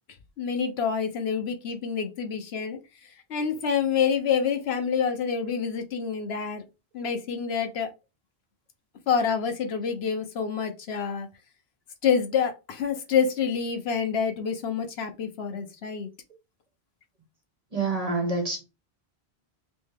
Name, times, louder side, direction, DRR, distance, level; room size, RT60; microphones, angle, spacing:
voice 1, 0.4-2.8 3.3-6.6 6.9-7.9 9.1-11.3 12.0-16.1, left 6 dB, 75° left, 1.0 m, -27 dB
voice 2, 17.7-18.6, right 3 dB, 35° right, 1.3 m, -27 dB
3.3 x 3.1 x 3.3 m
omnidirectional pair, 1.1 m